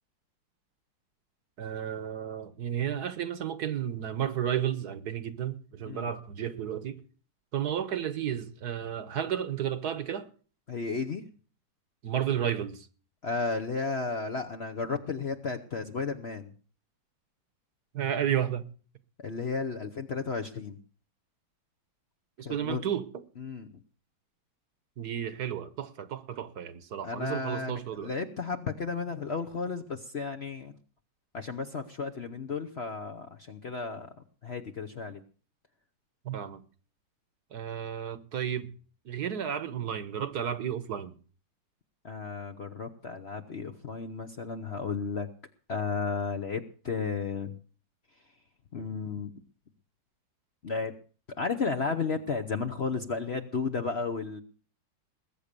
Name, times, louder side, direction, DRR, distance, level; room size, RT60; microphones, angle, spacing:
voice 1, 1.6-7.0 7.5-10.3 12.0-12.9 17.9-18.6 22.4-23.0 25.0-28.1 36.2-36.6 37.5-38.7 39.0-41.1, right 9 dB, 60° right, 1.4 m, -32 dB
voice 2, 10.7-11.2 13.2-16.5 19.2-20.8 22.4-22.8 23.4-23.7 27.0-30.7 31.3-34.1 34.4-35.2 42.0-45.3 45.7-47.5 48.7-49.3 50.6-50.9 51.4-54.4, left 4 dB, 45° left, 0.9 m, -33 dB
20.5 x 8.6 x 6.8 m
omnidirectional pair, 2.1 m